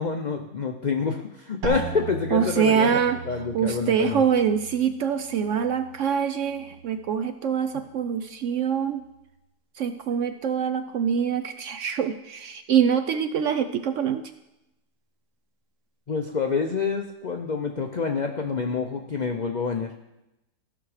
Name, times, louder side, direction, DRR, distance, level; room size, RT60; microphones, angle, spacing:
voice 1, 0.0-3.0 3.3-4.2 16.1-19.9, left 5 dB, 90° left, 4 dB, 0.4 m, -27 dB
sound 1, 1.6-7.3 7.6-8.3 8.8-9.2, right 5 dB, 90° right, 1.9 m, -38 dB
voice 2, 2.3-3.2 3.5-9.0 9.8-14.2, right 7 dB, 70° right, 9 dB, 0.7 m, -24 dB
14.5 x 6.0 x 4.9 m, 0.91 s
omnidirectional pair, 1.7 m